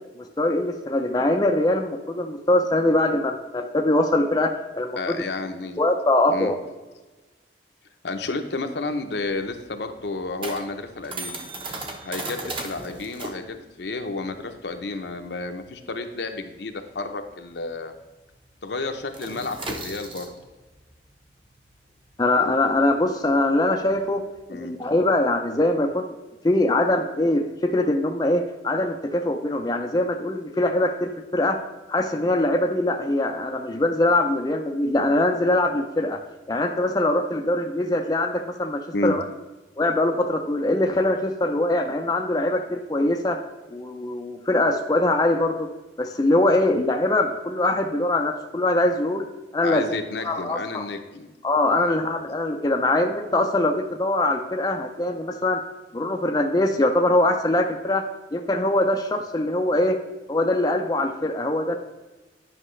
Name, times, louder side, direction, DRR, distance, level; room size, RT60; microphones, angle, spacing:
voice 1, 0.2-5.2 5.8-6.6 22.2-24.2 24.5-26.1 26.4-31.6 31.9-36.2 36.5-39.2 39.8-43.4 43.7-45.7 46.0-49.3 49.5-49.8 50.2-50.8 51.4-55.6 55.9-58.0 58.3-60.0 60.3-61.8, left 1 dB, 20° left, 3 dB, 0.5 m, -22 dB
voice 2, 5.0-5.8 6.3-6.5 8.0-11.4 12.0-17.9 18.6-20.3 24.5-24.8 38.9-39.2 49.6-51.3 51.7-52.0, left 3 dB, 70° left, 6 dB, 0.8 m, -31 dB
sound 1, 8.9-17.9 18.1-18.4 18.7-24.4, right 2 dB, 30° right, 0.9 m, -37 dB
9.9 x 5.8 x 3.2 m, 1.2 s
head